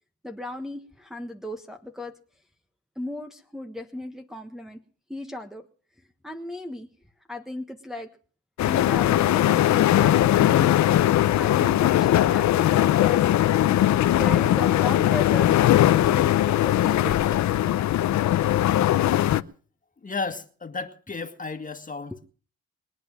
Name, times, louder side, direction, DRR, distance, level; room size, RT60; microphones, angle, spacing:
voice 1, 0.2-2.2 2.9-4.8 5.1-5.7 6.2-6.9 7.3-8.1 8.6-10.8 11.3-13.3 14.1-15.6 15.9-17.5 22.1-22.2, left 1 dB, ahead, 1.3 m, -36 dB
sound 1, 8.6-19.4, left 13 dB, 65° left, 0.8 m, -20 dB
voice 2, 20.0-22.1, left 4 dB, 25° left, 1.9 m, -33 dB
22.0 x 9.3 x 6.3 m
cardioid pair, 90°, 30 cm